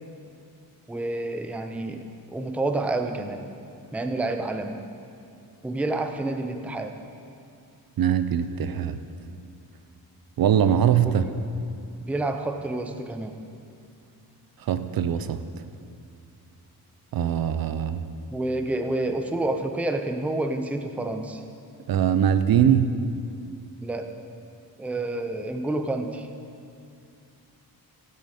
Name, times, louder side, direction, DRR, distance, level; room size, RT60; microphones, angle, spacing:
voice 1, 0.9-3.5 3.9-4.8 5.6-6.9 11.1-11.2 12.1-13.3 18.3-21.4 23.8-24.1 24.8-26.3, right 2 dB, 5° right, 6 dB, 0.5 m, -29 dB
voice 2, 8.0-9.0 10.4-11.3 14.6-15.4 17.1-18.0 21.9-23.0, right 9 dB, 65° right, 11 dB, 0.6 m, -22 dB
15.5 x 9.7 x 4.2 m, 2.5 s
wide cardioid pair, 165°, 38 cm